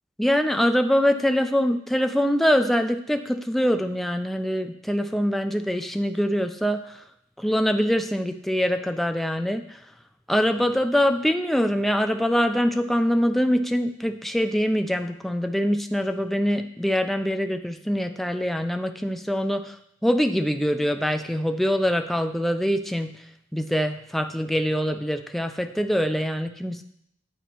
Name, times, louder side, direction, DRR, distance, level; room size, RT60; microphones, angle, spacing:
voice 1, 0.2-7.0 7.4-9.8 10.3-19.8 20.0-23.1 23.5-26.8, equal, ahead, 6 dB, 0.3 m, -24 dB
10.0 x 4.0 x 3.0 m, 0.72 s
head